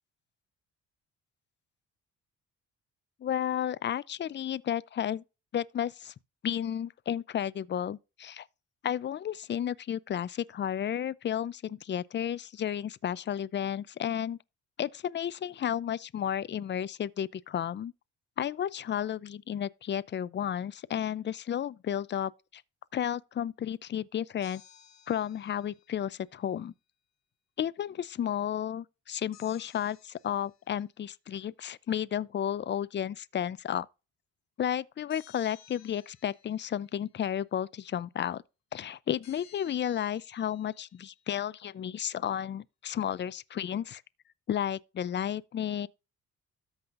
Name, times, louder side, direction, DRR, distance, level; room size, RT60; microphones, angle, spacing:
voice 1, 3.2-5.2 5.5-6.1 6.4-8.5 8.8-14.4 14.8-17.9 18.4-22.6 22.9-24.6 25.1-26.7 27.6-33.9 34.6-38.4 38.7-44.0 44.5-45.9, left 9 dB, 40° left, 0.5 m, -32 dB
sound 1, 24.4-26.1 29.3-30.8 35.1-37.0 39.2-41.4, left 10 dB, 60° left, 1.4 m, -58 dB
13.5 x 5.6 x 2.6 m
cardioid pair, 90°, 30 cm